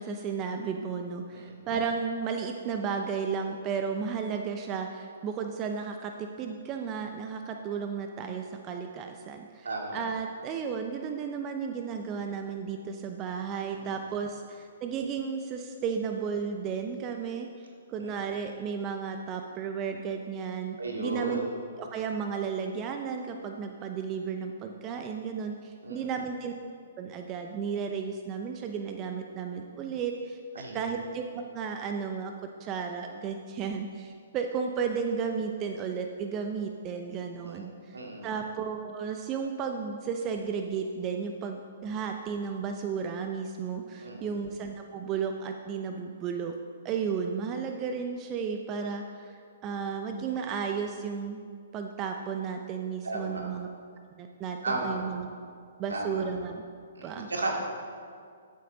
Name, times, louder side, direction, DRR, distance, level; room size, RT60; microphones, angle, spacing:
voice 1, 0.0-21.4 21.8-26.5 27.0-32.3 32.6-46.5 46.8-51.4 51.7-53.7 54.2-55.3 55.8-56.6 57.0-57.3, right 6 dB, 30° right, 4 dB, 0.6 m, -33 dB
voice 2, 9.6-10.0 13.8-13.9 18.0-18.1 20.8-21.5 25.8-26.1 30.6-30.9 37.4-38.3 44.0-44.3 53.0-53.5 54.6-55.0 55.9-56.2 57.0-57.5, right 2 dB, 80° right, 0 dB, 2.2 m, -34 dB
14.0 x 7.6 x 3.9 m, 2.2 s
figure-of-eight pair, 125°, 0 cm